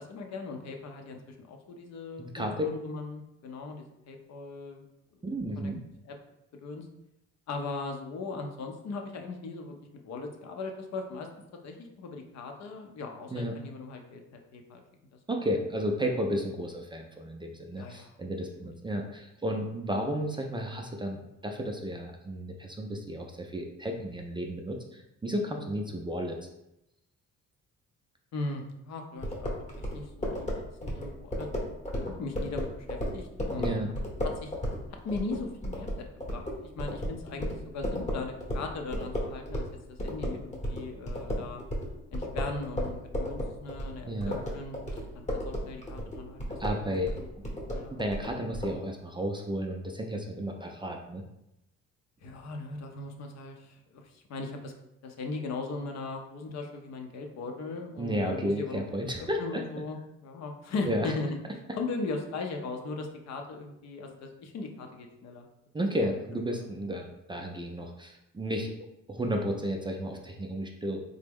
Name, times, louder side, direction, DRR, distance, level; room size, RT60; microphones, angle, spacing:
voice 1, 0.0-4.9 5.1-5.2 5.6-5.7 6.0-6.2 6.6-6.9 7.5-9.7 10.0-11.3 11.6-14.8 17.8-18.1 18.6-18.7 28.3-30.5 30.8-31.5 31.9-33.7 34.2-34.5 35.0-41.6 42.1-46.4 46.9-47.3 47.7-48.0 52.2-54.7 55.0-58.8 59.2-61.4 61.8-65.5 65.8-66.1, left 3 dB, 60° left, 4 dB, 0.6 m, -39 dB
voice 2, 2.2-2.7 5.2-5.8 13.3-13.6 15.3-26.4 33.6-33.9 44.1-44.4 46.6-47.1 47.9-51.2 58.0-59.6 60.9-61.1 65.7-68.7 69.1-71.0, equal, 15° right, 2 dB, 0.3 m, -33 dB
sound 1, 29.2-39.7 40.0-48.7, equal, 25° left, 0.9 m, -34 dB
3.4 x 2.1 x 3.4 m, 0.85 s
cardioid pair, 90°, 30 cm